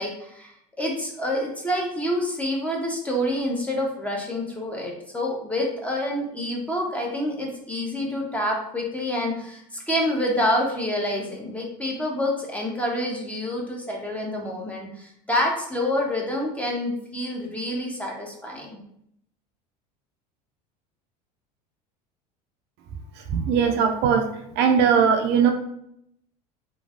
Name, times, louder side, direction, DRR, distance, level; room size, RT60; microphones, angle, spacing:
voice 1, 0.0-18.8, left 1 dB, 5° left, -1 dB, 0.7 m, -27 dB
voice 2, 23.3-24.2 24.6-25.5, right 7 dB, 55° right, 4 dB, 0.4 m, -19 dB
3.1 x 2.4 x 2.4 m, 0.73 s
hypercardioid pair, 90°, 21 cm